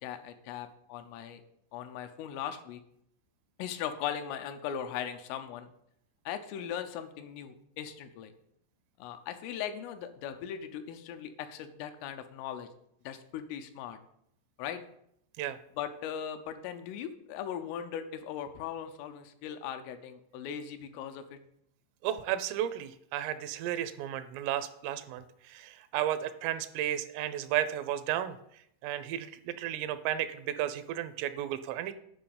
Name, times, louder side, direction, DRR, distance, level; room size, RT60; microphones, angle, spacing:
voice 1, 0.0-1.4 1.7-2.8 3.6-5.7 6.3-8.3 9.0-12.7 13.1-14.0 14.6-14.8 15.8-21.4, left 9 dB, 85° left, 8 dB, 3.5 m, -39 dB
voice 2, 22.0-28.4 28.8-31.9, right 11 dB, 90° right, 11 dB, 3.4 m, -33 dB
10.0 x 5.9 x 7.1 m, 0.73 s
omnidirectional pair, 5.7 m